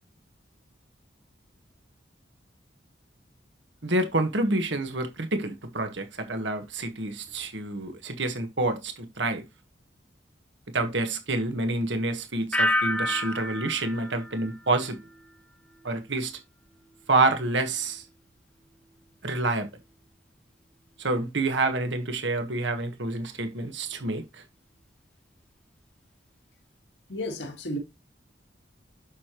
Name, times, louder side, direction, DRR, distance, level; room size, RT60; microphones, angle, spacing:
voice 1, 3.8-9.4 10.7-15.0 15.8-16.4 17.1-18.0 19.2-19.7 21.0-24.4, right 2 dB, 75° right, 1.5 m, -28 dB
sound 1, 12.5-15.4 15.7-16.2, left 1 dB, 5° left, 1.1 m, -30 dB
voice 2, 27.1-27.8, left 1 dB, 70° left, 1.8 m, -32 dB
8.2 x 6.8 x 3.1 m
head